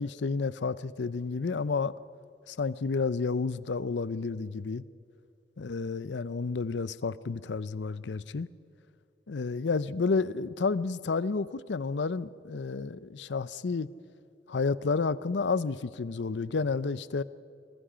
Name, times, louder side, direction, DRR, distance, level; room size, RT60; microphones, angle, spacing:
voice 1, 0.0-2.0 2.5-4.8 5.6-8.5 9.3-13.9 14.5-17.2, left 4 dB, 75° left, 0.6 m, -30 dB
26.5 x 21.0 x 5.1 m
head